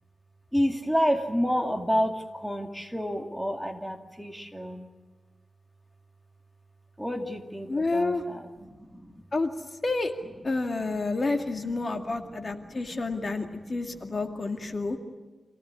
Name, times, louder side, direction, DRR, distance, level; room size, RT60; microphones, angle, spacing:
voice 1, 0.5-4.9 7.0-9.2 10.8-11.1 11.4-14.4 14.7-15.0, equal, ahead, 2 dB, 2.2 m, -31 dB
voice 2, 7.7-8.2 9.3-9.5 9.8-10.1 10.4-15.0, left 3 dB, 45° left, 3 dB, 2.2 m, -29 dB
27.5 x 17.0 x 9.6 m, 1.3 s
wide cardioid pair, 100°, 0 cm